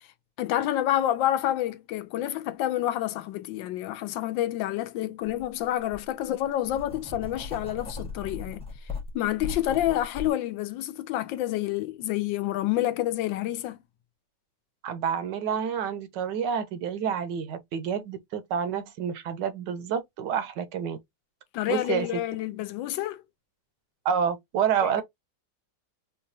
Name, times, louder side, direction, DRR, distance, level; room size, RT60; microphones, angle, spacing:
voice 1, 0.4-8.6 9.1-13.8 21.5-23.2, left 13 dB, 80° left, 1.3 m, -28 dB
Writing, 5.3-5.4 5.9-10.3, left 4 dB, 5° left, 0.7 m, -38 dB
voice 2, 14.8-21.0 21.7-22.2 24.0-25.0, right 7 dB, 75° right, 1.2 m, -28 dB
4.7 x 2.3 x 2.6 m
omnidirectional pair, 2.0 m